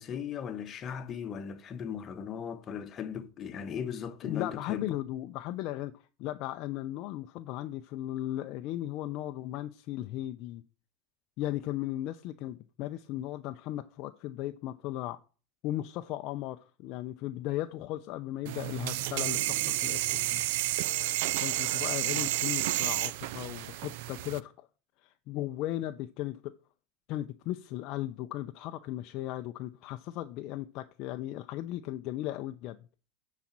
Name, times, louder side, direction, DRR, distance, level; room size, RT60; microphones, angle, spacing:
voice 1, 0.0-4.9, left 8 dB, 30° left, 0.9 m, -37 dB
voice 2, 4.2-5.9 6.2-10.6 11.4-15.2 15.6-20.4 21.4-24.7 25.0-26.6 27.1-32.8, left 14 dB, 50° left, 0.4 m, -36 dB
sound 1, 18.5-24.4, right 16 dB, 65° right, 0.4 m, -31 dB
8.5 x 4.2 x 7.2 m
supercardioid pair, 135°, 0 cm